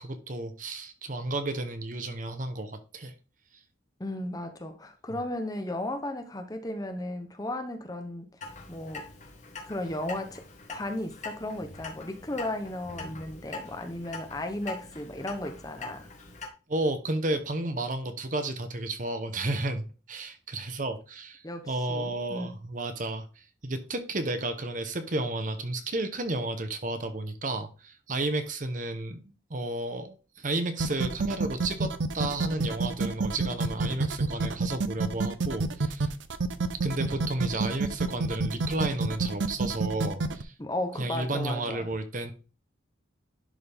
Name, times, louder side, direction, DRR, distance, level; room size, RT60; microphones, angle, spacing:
voice 1, 0.0-3.1 16.7-36.1 36.8-40.5 41.0-42.3, right 2 dB, 40° right, 0.9 m, -32 dB
voice 2, 4.0-8.3 8.7-9.1 9.7-10.4 10.7-16.1 21.4-22.5 40.6-41.9, left 1 dB, 20° left, 0.7 m, -35 dB
Clock, 8.4-16.5, left 3 dB, 40° left, 1.3 m, -43 dB
sound 1, 30.8-40.4, right 3 dB, 70° right, 0.6 m, -28 dB
11.0 x 3.9 x 3.5 m
head